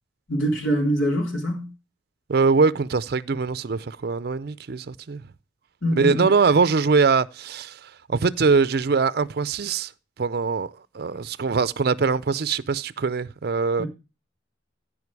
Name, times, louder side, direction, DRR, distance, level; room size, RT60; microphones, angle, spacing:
voice 1, 0.3-1.7 5.8-6.3 13.8-13.9, equal, 85° left, 3.6 m, -24 dB
voice 2, 2.3-5.2 6.0-7.8 8.1-9.9 10.2-13.8, right 4 dB, 55° right, 0.5 m, -22 dB
14.5 x 5.1 x 4.7 m
head